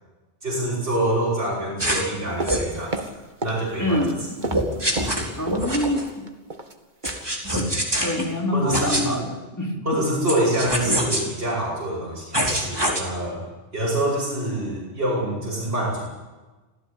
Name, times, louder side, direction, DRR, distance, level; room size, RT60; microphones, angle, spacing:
voice 1, 0.4-3.0 3.4-4.0 8.5-9.2 9.8-13.4 13.7-16.1, right 1 dB, 55° right, -5 dB, 7.9 m, -25 dB
sound 1, 1.8-2.1 2.4-2.7 4.5-6.0 7.0-8.2 8.7-9.0 10.3-11.2 12.3-13.0, right 1 dB, 20° right, 4.6 m, -24 dB
sound 2, 2.4-3.6 3.9-5.7 6.0-6.7 7.0-7.3 7.5-7.8 8.1-8.3 8.6-8.7, right 2 dB, 40° right, 2.2 m, -33 dB
voice 2, 3.8-4.5 5.4-6.3 7.4-7.7 8.0-10.0, left 1 dB, 15° left, 1 dB, 4.1 m, -26 dB
27.5 x 16.0 x 8.9 m, 1.2 s
omnidirectional pair, 1.2 m